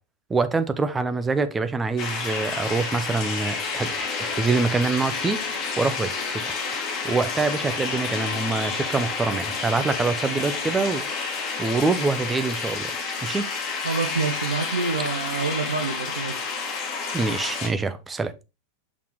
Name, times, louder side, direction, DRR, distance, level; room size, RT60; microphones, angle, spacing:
voice 1, 0.3-6.5 7.0-11.0 11.6-12.9 13.2-13.4 17.1-18.3, right 4 dB, 15° right, 0.7 m, -25 dB
sound 1, 2.0-17.7, left 4 dB, 30° left, 2.2 m, -30 dB
voice 2, 13.8-16.5, right 4 dB, 75° right, 0.9 m, -27 dB
6.2 x 5.8 x 3.0 m
figure-of-eight pair, 90°, 0 cm